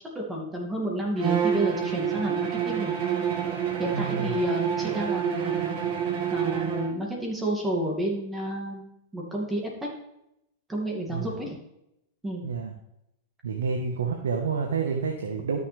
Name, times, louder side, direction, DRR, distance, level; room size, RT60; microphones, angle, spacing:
voice 1, 0.1-2.9 3.8-5.8 6.3-8.8 9.1-9.9 10.7-11.6 12.2-12.4, right 1 dB, 10° right, -1 dB, 2.4 m, -30 dB
Bowed string instrument, 1.2-7.0, right 8 dB, 50° right, 1.9 m, -28 dB
voice 2, 3.9-4.4 11.1-11.3 12.4-12.7 13.4-15.6, right 5 dB, 90° right, 2 dB, 1.3 m, -29 dB
13.0 x 6.8 x 3.5 m, 0.82 s
hypercardioid pair, 130°, 0 cm